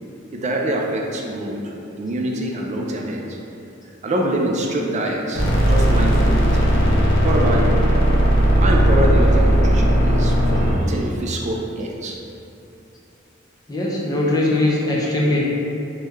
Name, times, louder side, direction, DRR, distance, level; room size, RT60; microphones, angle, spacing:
voice 1, 0.3-1.6 2.0-3.4 4.0-7.8 8.6-12.2, right 1 dB, 35° right, 0 dB, 0.3 m, -25 dB
sound 1, 5.3-10.7, equal, 70° left, 0.5 m, -16 dB
voice 2, 13.7-15.4, left 2 dB, 20° left, -4 dB, 0.5 m, -20 dB
3.0 x 2.1 x 3.5 m, 2.8 s
head